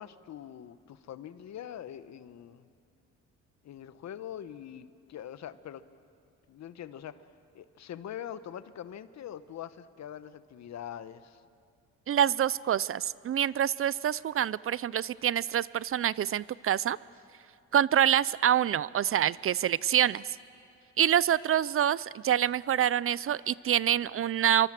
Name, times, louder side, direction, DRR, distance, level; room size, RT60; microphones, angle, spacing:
voice 1, 0.0-2.7 3.6-5.8 6.5-7.3 7.5-11.4, left 10 dB, 65° left, 14 dB, 1.1 m, -43 dB
voice 2, 12.1-17.0 17.7-20.2 21.0-24.7, right 10 dB, 45° right, 20 dB, 0.5 m, -26 dB
26.5 x 24.5 x 7.6 m, 2.4 s
cardioid pair, 90°, 30 cm